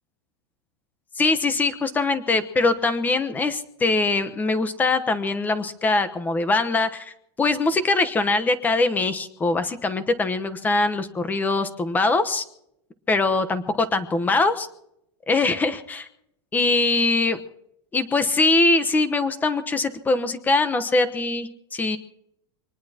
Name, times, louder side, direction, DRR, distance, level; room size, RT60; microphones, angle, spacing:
voice 1, 1.2-7.1 7.4-12.4 13.1-14.7 15.3-16.1 16.5-17.4 17.9-22.0, left 3 dB, 10° left, 11 dB, 1.0 m, -22 dB
24.5 x 20.0 x 2.9 m, 0.77 s
supercardioid pair, 165°, 14 cm